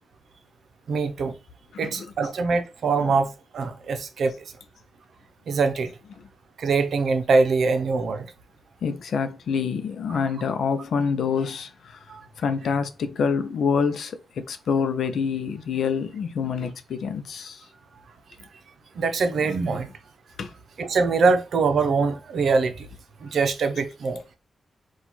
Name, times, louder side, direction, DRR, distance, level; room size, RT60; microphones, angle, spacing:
voice 1, 0.9-1.4 1.8-4.3 5.5-5.9 6.6-8.3 12.1-12.2 19.0-19.9 20.8-22.9 23.2-24.2, right 4 dB, 70° right, 0.7 m, -23 dB
voice 2, 1.7-2.3 3.0-3.2 6.1-6.3 8.8-12.0 12.4-17.6 19.7-19.8 20.4-20.5 23.7-23.8, left 6 dB, 80° left, 0.6 m, -27 dB
4.4 x 2.4 x 4.0 m
wide cardioid pair, 150°, 0 cm